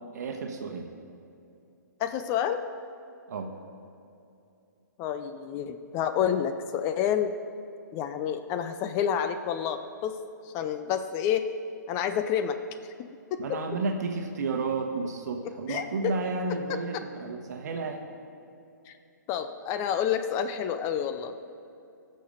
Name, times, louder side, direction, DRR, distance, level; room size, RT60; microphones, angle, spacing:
voice 1, 0.1-0.9 3.3-3.5 13.4-18.0, right 4 dB, 60° right, 4 dB, 1.1 m, -32 dB
voice 2, 2.0-2.7 5.0-7.4 7.9-10.2 10.4-11.5 11.9-12.6 13.0-13.6 15.4-16.2 16.7-16.8 18.9-19.0 19.3-21.3, left 9 dB, 25° left, 9 dB, 0.5 m, -29 dB
15.5 x 6.6 x 5.1 m, 2.6 s
hypercardioid pair, 135°, 10 cm